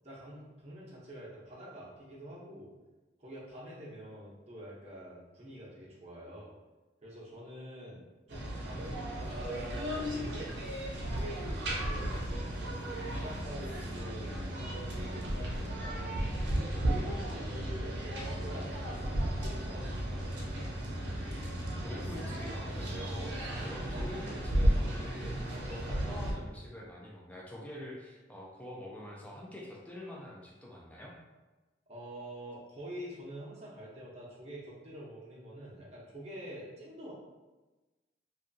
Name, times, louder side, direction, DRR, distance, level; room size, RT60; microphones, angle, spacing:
voice 1, 0.0-2.7 3.2-6.5 7.0-10.4 11.0-16.2 16.7-20.4 31.9-37.1, equal, 35° right, -7 dB, 0.7 m, -46 dB
sound 1, 8.3-26.3, right 1 dB, 80° right, 0.6 m, -34 dB
voice 2, 21.8-31.1, left 1 dB, 10° left, -4 dB, 0.4 m, -45 dB
2.7 x 2.3 x 2.6 m, 1.2 s
head